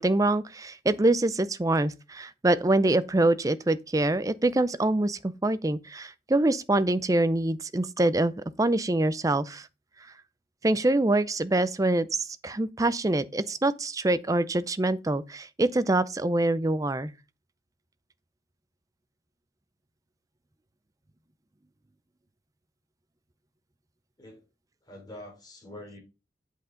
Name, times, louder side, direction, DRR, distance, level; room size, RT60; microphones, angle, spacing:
voice 1, 0.0-9.7 10.6-17.1, right 2 dB, 20° right, 0.5 m, -25 dB
voice 2, 24.9-26.0, left 1 dB, 20° left, 3.3 m, -45 dB
8.3 x 7.6 x 3.8 m
head